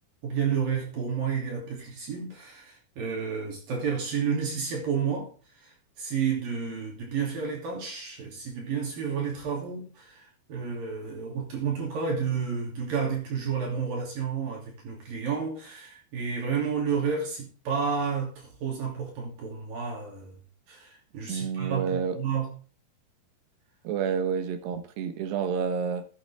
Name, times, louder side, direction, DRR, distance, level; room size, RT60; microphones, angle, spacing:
voice 1, 0.2-20.3 20.7-22.5, right 6 dB, 60° right, 4.5 m, -31 dB
voice 2, 21.3-22.2 23.9-26.1, right 6 dB, 85° right, 3.5 m, -29 dB
14.0 x 9.0 x 3.6 m
omnidirectional pair, 4.7 m